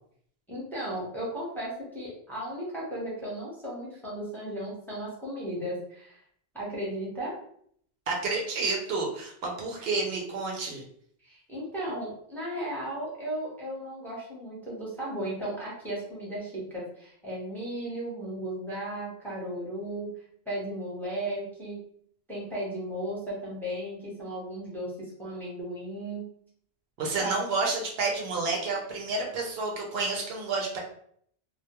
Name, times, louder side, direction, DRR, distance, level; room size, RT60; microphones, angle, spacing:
voice 1, 0.5-6.2 6.5-7.3 11.2-20.1 20.5-21.8 22.3-26.3 27.2-27.4, right 1 dB, ahead, -6 dB, 0.8 m, -35 dB
voice 2, 8.1-10.8 27.0-30.8, right 3 dB, 75° right, -1 dB, 0.8 m, -30 dB
2.2 x 2.2 x 2.8 m, 0.64 s
omnidirectional pair, 1.0 m